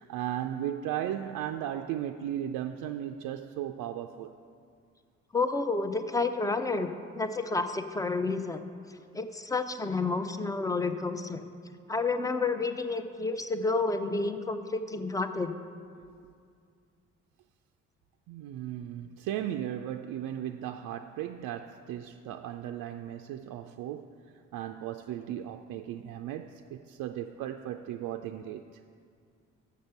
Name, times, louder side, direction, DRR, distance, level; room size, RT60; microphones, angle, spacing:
voice 1, 0.0-4.4 16.1-16.3 18.3-24.2 24.5-28.6, right 11 dB, 60° right, 5 dB, 0.4 m, -36 dB
voice 2, 5.3-6.9 7.1-8.6 9.1-11.4 11.9-15.5, left 3 dB, 10° left, 9 dB, 0.5 m, -30 dB
6.6 x 6.5 x 6.9 m, 2.2 s
hypercardioid pair, 45°, 37 cm